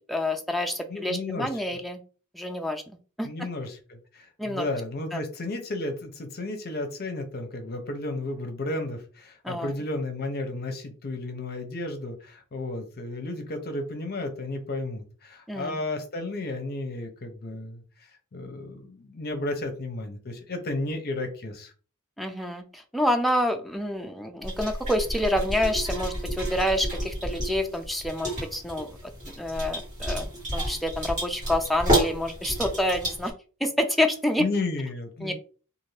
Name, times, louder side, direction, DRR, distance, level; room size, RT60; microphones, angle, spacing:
voice 1, 0.1-2.0 2.3-2.8 3.2-3.3 4.4-4.6 5.1-5.2 9.4-9.7 15.5-15.8 22.2-28.9 29.4-33.3 33.6-34.4 35.2-35.3, left 1 dB, ahead, 4 dB, 0.3 m, -28 dB
voice 2, 0.9-1.5 3.2-17.8 18.3-21.7 34.4-35.3, left 2 dB, 45° left, 6 dB, 0.6 m, -33 dB
sound 1, 24.4-33.3, right 1 dB, 35° right, 1.6 m, -30 dB
2.6 x 2.5 x 3.2 m, 0.38 s
head